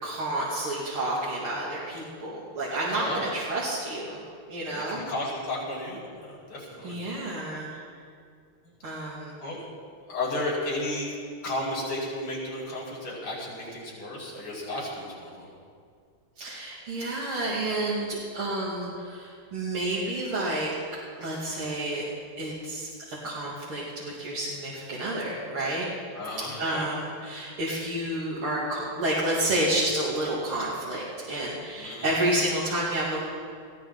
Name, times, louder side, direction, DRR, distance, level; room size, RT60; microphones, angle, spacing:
voice 1, 0.0-4.2 4.5-5.0 6.8-7.8 8.8-9.4 16.4-20.7 21.2-22.1 22.4-25.9 26.6-33.2, right 1 dB, 80° right, -7 dB, 3.2 m, -30 dB
voice 2, 2.9-3.3 4.6-7.0 8.6-8.7 9.4-9.6 10.1-11.1 11.4-15.5 26.2-27.0 31.7-32.1, left 1 dB, 90° left, -5 dB, 5.7 m, -33 dB
21.0 x 15.5 x 4.0 m, 2.1 s
omnidirectional pair, 2.3 m